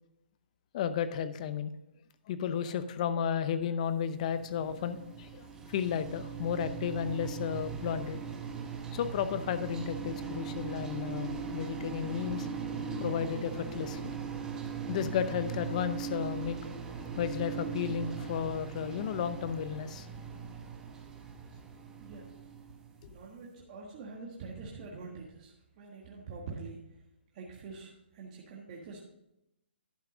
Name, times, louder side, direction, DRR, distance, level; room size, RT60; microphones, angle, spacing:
voice 1, 0.7-1.7 2.3-8.2 8.9-12.5 13.0-14.1 14.9-16.6 17.2-20.1, left 8 dB, 35° left, 12 dB, 0.7 m, -33 dB
sound 1, 4.1-23.1, right 6 dB, 10° right, 1.1 m, -40 dB
voice 2, 23.1-26.8 27.3-29.0, right 4 dB, 35° right, -2 dB, 1.5 m, -45 dB
11.5 x 5.8 x 5.0 m, 0.84 s
hypercardioid pair, 160°, 6 cm